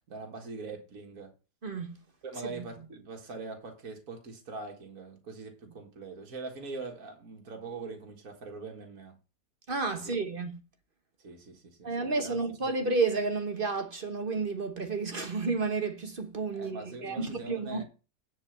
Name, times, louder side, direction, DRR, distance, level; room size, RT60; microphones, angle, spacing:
voice 1, 0.1-1.3 2.2-9.2 10.0-10.2 11.2-12.4 16.5-17.8, right 3 dB, 55° right, 2.0 m, -42 dB
voice 2, 1.6-2.0 2.6-2.7 9.7-10.6 11.8-17.8, right 4 dB, 35° right, 1.1 m, -31 dB
10.0 x 4.6 x 7.3 m
omnidirectional pair, 1.8 m